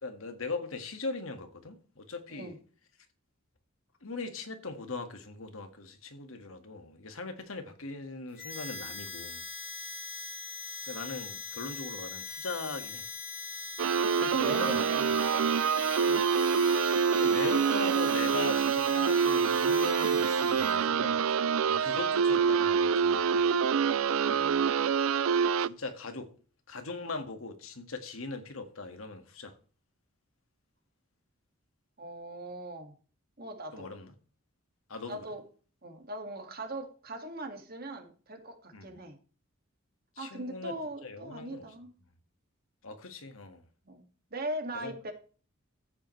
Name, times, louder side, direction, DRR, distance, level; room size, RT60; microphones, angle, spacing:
voice 1, 0.0-2.6 4.0-9.4 10.9-13.1 14.1-15.2 17.1-21.4 21.7-23.5 25.6-26.3 26.7-29.6 33.7-34.1 34.9-35.2 38.7-39.0 40.2-40.7 41.0-41.6 42.8-43.6 44.7-44.9, left 3 dB, 80° left, 1.8 m, -40 dB
Harmonica, 8.4-20.8, left 4 dB, 10° right, 3.2 m, -41 dB
sound 1, 13.8-25.7, right 6 dB, 75° right, 0.4 m, -26 dB
voice 2, 14.3-15.0 15.3-15.5 16.0-16.2 24.3-24.6 32.0-32.9 33.4-33.9 35.1-35.4 35.8-39.2 40.2-41.9 43.9-45.1, right 1 dB, 45° right, 2.1 m, -40 dB
14.0 x 9.0 x 3.3 m
head